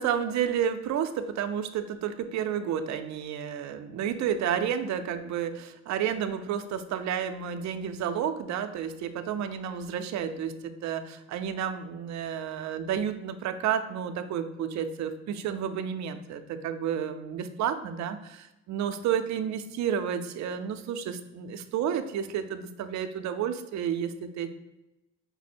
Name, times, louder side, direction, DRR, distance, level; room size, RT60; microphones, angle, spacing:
voice 1, 0.0-24.5, right 8 dB, 65° right, 9 dB, 0.5 m, -31 dB
5.1 x 2.1 x 4.2 m, 0.94 s
cardioid pair, 90°, 30 cm